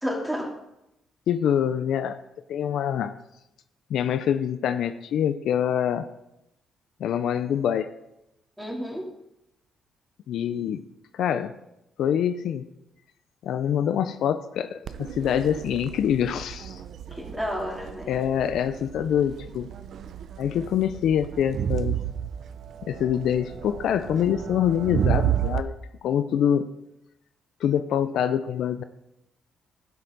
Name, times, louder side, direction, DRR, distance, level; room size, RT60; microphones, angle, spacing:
voice 1, 0.0-0.5 8.6-9.0 17.1-18.1, equal, ahead, -2 dB, 3.4 m, -31 dB
voice 2, 1.3-2.2 2.5-3.1 3.9-6.1 7.0-7.9 10.3-10.8 11.1-11.5 12.0-12.7 13.4-16.8 18.1-19.7 20.4-22.0 22.9-25.7 26.0-26.7 27.6-28.8, left 9 dB, 75° left, 11 dB, 0.5 m, -25 dB
Crowd, 14.9-25.6, right 10 dB, 65° right, 0.6 m, -32 dB
12.0 x 9.4 x 4.0 m, 0.87 s
cardioid pair, 90°, 0 cm